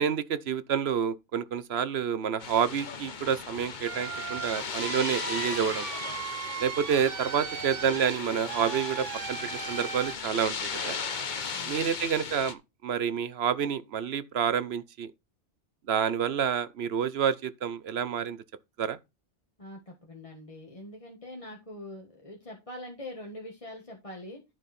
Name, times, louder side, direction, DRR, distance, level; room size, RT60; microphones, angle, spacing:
voice 1, 0.0-5.9 6.6-10.6 10.8-11.0 11.7-15.1 15.9-18.4 18.8-19.0, right 8 dB, 65° right, 1.0 m, -28 dB
sound 1, 2.4-12.5, left 5 dB, 45° left, 1.0 m, -37 dB
sound 2, 3.8-10.2, right 7 dB, 90° right, 1.3 m, -38 dB
voice 2, 11.5-12.0 19.6-24.4, left 1 dB, 30° left, 1.7 m, -43 dB
10.0 x 7.1 x 4.3 m
omnidirectional pair, 1.2 m